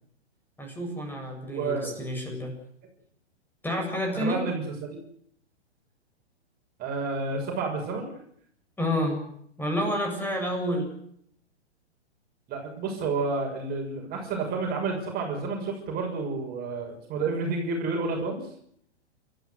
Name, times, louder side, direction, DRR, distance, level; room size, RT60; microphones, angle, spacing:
voice 1, 0.6-2.5 3.6-4.4 8.8-9.2 9.6-10.9, equal, 5° left, 3 dB, 7.6 m, -29 dB
voice 2, 1.5-1.9 4.1-5.0 6.8-8.1 12.5-18.4, right 4 dB, 25° right, 1 dB, 6.5 m, -30 dB
29.0 x 14.5 x 8.3 m, 0.68 s
figure-of-eight pair, 115°, 34 cm